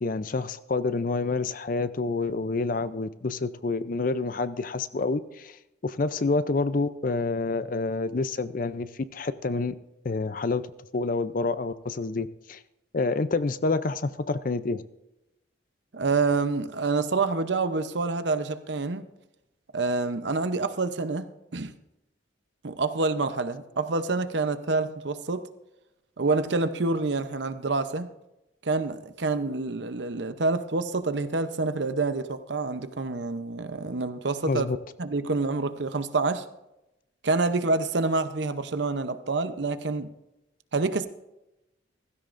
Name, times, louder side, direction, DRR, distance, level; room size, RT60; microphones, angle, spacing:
voice 1, 0.0-5.6 5.8-9.8 10.0-10.6 10.9-12.6 12.9-14.8 34.5-34.8, left 3 dB, 45° left, 0.5 m, -28 dB
voice 2, 15.9-19.1 19.7-21.7 22.6-25.5 26.2-28.1 28.6-34.7 35.0-36.4 37.2-40.1 40.7-41.1, right 3 dB, 65° right, 0.7 m, -27 dB
16.0 x 15.5 x 2.6 m
head